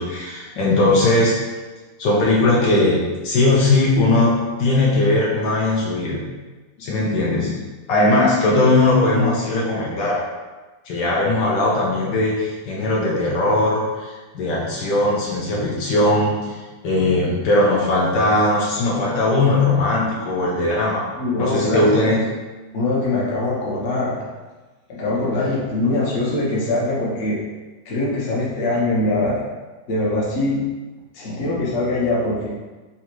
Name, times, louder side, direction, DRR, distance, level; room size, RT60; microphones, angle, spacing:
voice 1, 0.0-1.4 2.0-6.2 6.8-7.6 7.9-10.2 10.9-21.0 21.4-22.3, left 2 dB, 70° left, -4 dB, 1.3 m, -19 dB
voice 2, 21.2-21.8 22.7-24.2 24.9-27.4 27.9-29.4 29.9-30.6 31.1-32.5, left 2 dB, 45° left, -5 dB, 1.1 m, -22 dB
4.0 x 2.4 x 4.4 m, 1.3 s
omnidirectional pair, 2.1 m